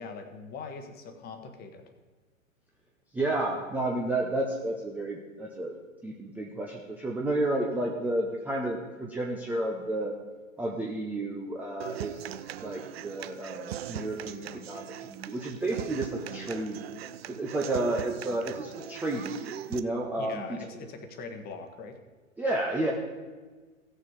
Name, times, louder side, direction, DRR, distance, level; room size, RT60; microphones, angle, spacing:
voice 1, 0.0-1.8 20.2-22.0, left 4 dB, 25° left, 7 dB, 1.2 m, -41 dB
voice 2, 3.1-5.7 6.0-10.2 10.6-12.3 12.6-16.8 17.3-20.9 22.4-22.9, right 2 dB, 5° right, -2 dB, 0.6 m, -31 dB
Human voice / Acoustic guitar, 11.8-19.8, right 10 dB, 50° right, 0.6 m, -40 dB
16.0 x 6.6 x 4.7 m, 1.4 s
figure-of-eight pair, 110°, 41 cm